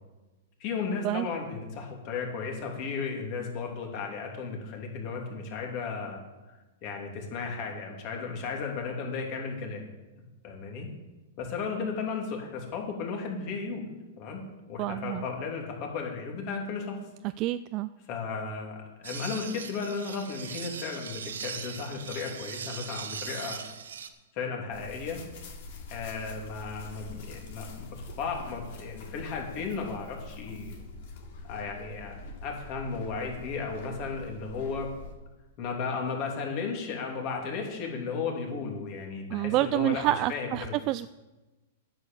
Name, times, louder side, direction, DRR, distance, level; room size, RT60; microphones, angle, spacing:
voice 1, 0.6-6.2 6.8-9.8 10.4-10.9 11.4-13.8 14.2-14.4 14.7-17.0 18.1-23.6 24.3-25.2 25.9-30.8 31.5-34.9 35.6-40.7, left 5 dB, 45° left, 1 dB, 3.0 m, -35 dB
voice 2, 14.8-15.2 17.4-17.9 39.3-41.1, right 15 dB, 35° right, 13 dB, 0.3 m, -28 dB
sound 1, 19.0-24.1, right 7 dB, 85° right, 1.0 m, -40 dB
sound 2, 24.7-35.1, left 2 dB, 60° left, 2.8 m, -44 dB
9.5 x 7.9 x 7.0 m, 1.1 s
hypercardioid pair, 135°, 0 cm